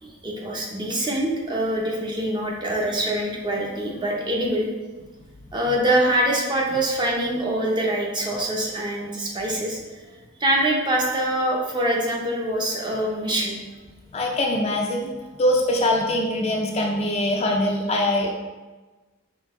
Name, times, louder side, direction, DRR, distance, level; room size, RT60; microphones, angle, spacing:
voice 1, 0.0-4.7 5.5-9.8 10.4-13.6, right 1 dB, 20° right, -2 dB, 0.7 m, -24 dB
voice 2, 14.1-15.1 15.4-18.3, left 1 dB, 30° left, 0 dB, 0.4 m, -22 dB
5.2 x 2.8 x 3.6 m, 1.2 s
head